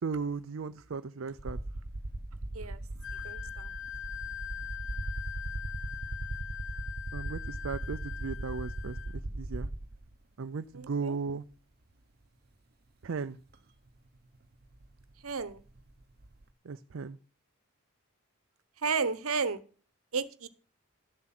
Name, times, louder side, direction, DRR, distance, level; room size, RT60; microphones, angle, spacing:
voice 1, 0.0-1.6 7.1-9.7 10.4-11.4 13.0-13.4 16.7-17.2, right 4 dB, 60° right, 0.5 m, -36 dB
sound 1, 1.4-10.1 11.3-11.4 13.5-13.6 13.9-16.4, right 1 dB, 45° right, 0.9 m, -39 dB
Wind instrument woodwind instrument, 3.0-9.2, left 10 dB, 60° left, 0.8 m, -42 dB
voice 2, 3.1-3.7 10.7-11.2 15.2-15.6 18.8-19.6 20.1-20.5, right 5 dB, 75° right, 1.0 m, -33 dB
12.0 x 7.6 x 6.0 m
head